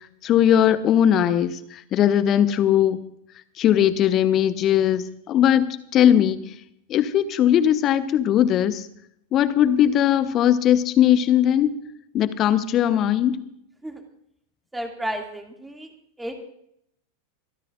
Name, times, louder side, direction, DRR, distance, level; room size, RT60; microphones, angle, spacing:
voice 1, 0.2-1.5 1.9-3.0 3.6-6.4 6.9-8.8 9.3-11.8 12.1-13.4, left 10 dB, 30° left, 14 dB, 1.0 m, -19 dB
voice 2, 14.7-15.9 16.2-16.4, right 1 dB, 5° right, 3 dB, 2.4 m, -32 dB
26.5 x 13.5 x 2.6 m, 0.71 s
figure-of-eight pair, 90°, 0 cm